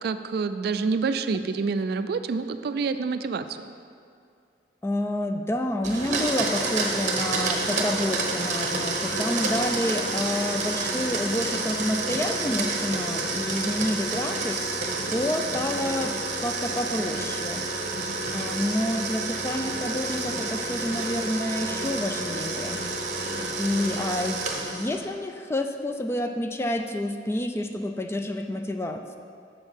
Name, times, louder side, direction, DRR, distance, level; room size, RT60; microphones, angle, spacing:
voice 1, 0.0-3.6, right 4 dB, 60° right, 10 dB, 0.3 m, -27 dB
voice 2, 4.8-14.6 15.1-17.7 18.3-22.8 23.6-29.2, left 1 dB, 15° left, 6 dB, 0.4 m, -29 dB
Domestic sounds home sounds, 5.8-25.0, right 3 dB, 45° right, 0.9 m, -29 dB
7.0 x 5.5 x 5.5 m, 2.3 s
head